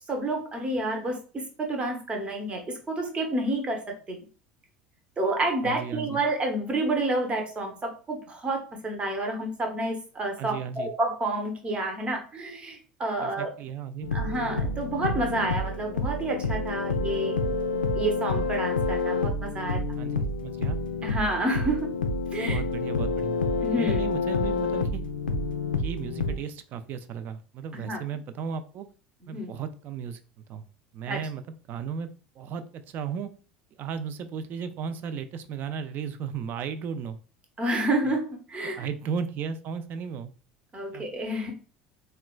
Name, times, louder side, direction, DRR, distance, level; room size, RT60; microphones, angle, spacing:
voice 1, 0.1-4.2 5.2-13.5 14.1-19.8 21.0-21.9 22.3-22.6 23.6-24.0 27.7-28.0 29.3-29.5 31.1-31.2 37.6-38.9 40.7-41.5, right 1 dB, 25° right, 2 dB, 0.8 m, -29 dB
voice 2, 5.6-6.2 10.4-10.9 13.2-14.1 20.0-20.8 22.4-23.4 23.8-25.0 25.8-28.9 29.3-30.2 30.5-30.6 30.9-32.1 32.4-33.3 33.8-37.2 38.6-40.3 40.9-41.0, right 7 dB, 40° right, 11 dB, 0.3 m, -35 dB
sound 1, 14.0-26.4, left 3 dB, 80° left, 0.3 m, -28 dB
3.7 x 2.2 x 2.2 m, 0.37 s
figure-of-eight pair, 70°, 5 cm